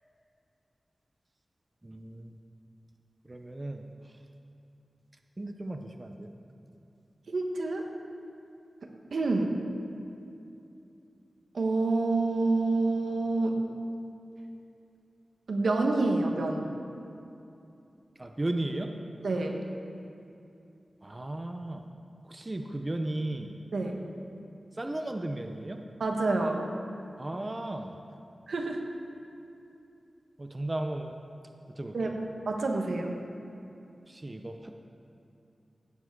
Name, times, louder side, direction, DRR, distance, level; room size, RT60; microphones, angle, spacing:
voice 1, 1.8-2.4 3.2-4.1 5.4-6.3 18.2-18.9 21.0-21.8 22.2-23.6 24.7-25.8 27.2-28.0 30.4-31.2 31.7-32.2 34.1-34.7, right 1 dB, 25° right, 5 dB, 0.6 m, -35 dB
voice 2, 7.3-7.9 9.1-9.6 11.5-13.6 15.5-16.7 19.2-19.6 23.7-24.0 26.0-26.6 28.5-28.8 31.9-32.1 32.5-33.2, right 2 dB, 85° right, 2 dB, 1.2 m, -28 dB
16.5 x 7.3 x 4.7 m, 2.7 s
wide cardioid pair, 95°, 0 cm